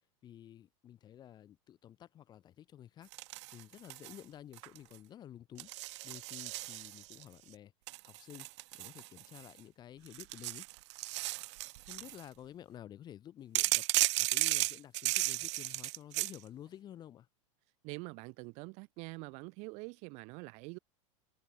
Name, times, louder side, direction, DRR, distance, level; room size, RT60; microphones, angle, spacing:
voice 1, 0.2-3.1 3.5-5.7 6.0-7.7 8.0-8.5 8.7-10.7 11.8-13.8 14.2-17.3, left 11 dB, 25° left, 3.7 m, -52 dB
sound 1, 3.1-4.2 4.5-5.0 5.6-7.2 7.9-9.6 10.1-12.2 13.6-16.4, right 20 dB, 60° right, 0.4 m, -34 dB
voice 2, 17.8-20.8, right 29 dB, 45° right, 1.7 m, -45 dB
supercardioid pair, 155°, 17 cm